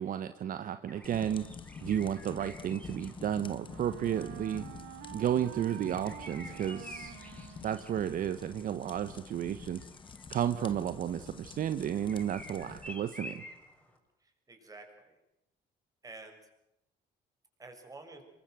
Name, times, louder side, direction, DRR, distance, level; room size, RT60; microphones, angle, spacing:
voice 1, 0.0-1.5 1.8-4.7 5.1-7.2 7.6-9.9 10.3-13.4, right 10 dB, 55° right, 11 dB, 1.2 m, -32 dB
sound 1, 0.9-14.0, left 1 dB, 5° left, 6.5 m, -52 dB
sound 2, 1.0-12.9, left 6 dB, 30° left, 1.6 m, -48 dB
Wind instrument woodwind instrument, 2.8-8.6, right 15 dB, 85° right, 1.3 m, -50 dB
voice 2, 14.2-15.2 16.0-16.4 17.6-18.2, right 3 dB, 20° right, 4 dB, 6.5 m, -50 dB
26.5 x 23.0 x 7.9 m, 0.88 s
cardioid pair, 110°, 17 cm